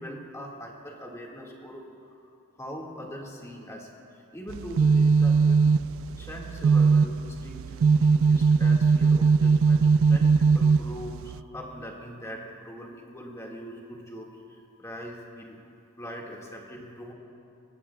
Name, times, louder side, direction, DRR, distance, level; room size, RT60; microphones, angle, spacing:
voice 1, 0.0-1.8 2.1-2.2 2.5-5.7 6.2-15.6 16.0-17.1, equal, 15° left, -2 dB, 1.9 m, -41 dB
sound 1, 4.5-11.4, right 5 dB, 65° right, 0.3 m, -21 dB
23.5 x 19.0 x 2.3 m, 2.6 s
head